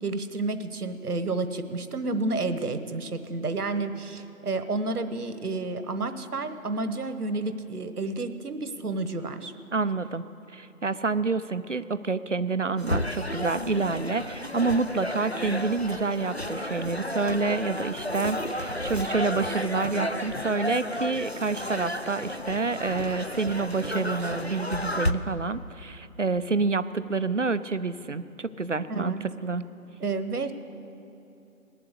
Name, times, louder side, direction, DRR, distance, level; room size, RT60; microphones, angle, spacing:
voice 1, 0.0-9.5 28.9-29.3 30.0-30.5, right 3 dB, 75° right, 10 dB, 1.2 m, -30 dB
voice 2, 9.7-10.2 10.5-29.6, right 4 dB, 55° right, 14 dB, 0.5 m, -28 dB
sound 1, 12.8-25.1, left 1 dB, 45° left, 0.4 m, -32 dB
19.5 x 7.9 x 8.1 m, 2.8 s
figure-of-eight pair, 175°, 45 cm